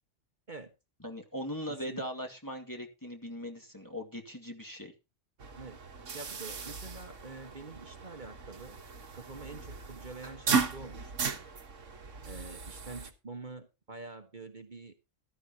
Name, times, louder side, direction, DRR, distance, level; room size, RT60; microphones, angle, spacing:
voice 1, 1.0-4.9, equal, 15° left, 2 dB, 2.2 m, -40 dB
voice 2, 1.7-2.1 5.6-5.8 6.1-8.8 9.1-11.3 12.2-15.0, right 3 dB, 40° right, 6 dB, 1.6 m, -46 dB
sound 1, 5.4-13.1, right 5 dB, 80° right, 1.8 m, -36 dB
14.5 x 13.0 x 2.9 m, 0.28 s
omnidirectional pair, 1.3 m